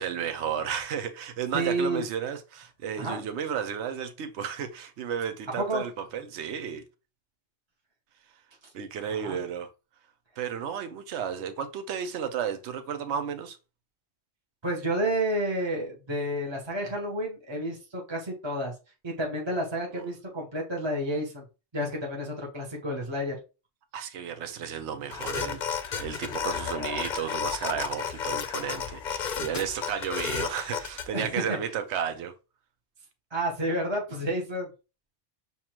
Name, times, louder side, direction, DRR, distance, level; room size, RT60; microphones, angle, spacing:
voice 1, 0.0-6.8 8.7-9.7 10.4-13.6 19.9-20.1 23.9-32.3, right 8 dB, 75° right, 1.0 m, -33 dB
voice 2, 1.5-2.0 3.0-3.2 5.6-5.8 8.6-8.7 9.1-9.4 14.6-18.7 19.0-21.4 21.7-23.4 31.1-31.6 33.3-34.7, right 1 dB, 25° right, 0.9 m, -30 dB
sound 1, 25.1-31.1, left 7 dB, 50° left, 0.6 m, -32 dB
6.9 x 2.4 x 3.0 m
omnidirectional pair, 1.2 m